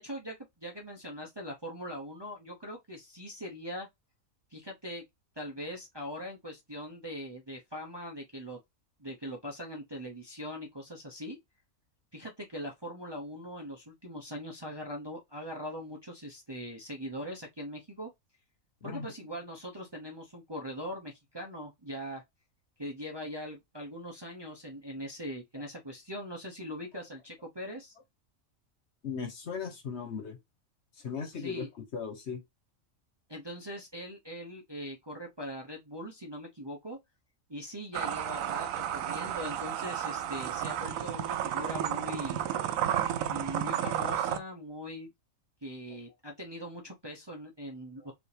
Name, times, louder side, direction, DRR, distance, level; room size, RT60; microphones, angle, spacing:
voice 1, 0.0-3.9 4.5-5.0 5.4-8.6 9.0-11.4 12.1-18.1 18.8-22.2 22.8-27.9 31.4-31.7 33.3-37.0 37.5-42.4 43.3-45.1 45.6-48.1, equal, 25° right, 0.7 m, -41 dB
voice 2, 18.8-19.1 25.6-25.7 29.0-30.4 31.0-32.4 45.9-46.0, left 6 dB, 55° left, 1.2 m, -38 dB
sound 1, 37.9-44.4, right 10 dB, 75° right, 1.0 m, -32 dB
5.1 x 2.8 x 3.3 m
omnidirectional pair, 1.4 m